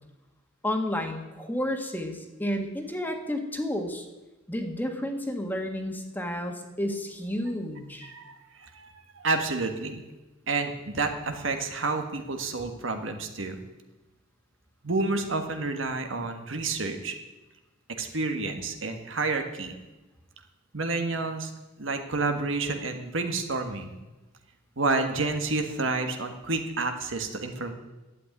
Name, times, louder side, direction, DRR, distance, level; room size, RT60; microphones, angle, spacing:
voice 1, 0.6-4.1 4.5-8.1, left 1 dB, 10° left, 4 dB, 1.6 m, -31 dB
voice 2, 8.0-10.0 10.5-13.6 14.8-17.1 18.0-19.7 20.7-21.5 21.8-23.9 24.8-27.7, right 3 dB, 70° right, 5 dB, 1.6 m, -29 dB
12.0 x 8.4 x 9.3 m, 1.1 s
head